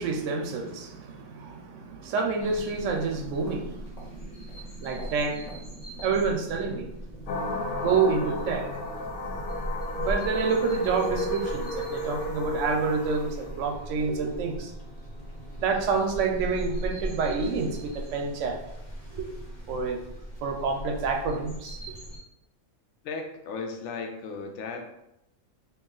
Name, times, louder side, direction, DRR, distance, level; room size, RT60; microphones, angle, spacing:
voice 1, 0.0-6.9 7.7-8.7 10.0-14.7 15.6-18.6 19.1-19.3 19.7-20.0 20.4-21.8, right 4 dB, 70° right, 3 dB, 0.9 m, -28 dB
sound 1, 2.4-22.2, equal, 35° left, 1.2 m, -39 dB
sound 2, 7.3-16.2, left 1 dB, 85° left, 1.1 m, -34 dB
voice 2, 23.0-24.9, left 4 dB, 65° left, 3 dB, 0.9 m, -36 dB
3.0 x 2.8 x 3.7 m, 0.86 s
omnidirectional pair, 1.5 m